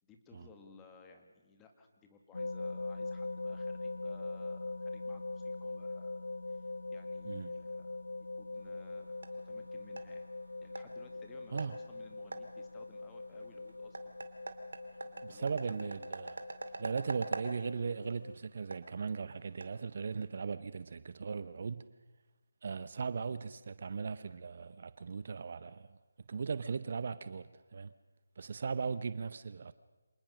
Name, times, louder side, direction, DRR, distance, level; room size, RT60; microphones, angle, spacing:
voice 1, 0.0-8.0 8.4-10.3 10.6-14.1 15.0-15.9 29.1-29.3, left 4 dB, 10° left, 2.0 m, -59 dB
sound 1, 2.3-18.4, left 3 dB, 70° left, 0.9 m, -42 dB
sound 2, 8.6-20.4, right 3 dB, 70° right, 2.4 m, -47 dB
voice 2, 15.2-16.4 16.8-21.9 22.6-26.0 26.3-27.9 28.4-29.7, right 5 dB, 45° right, 0.8 m, -38 dB
26.5 x 19.5 x 6.4 m
figure-of-eight pair, 160°, 0 cm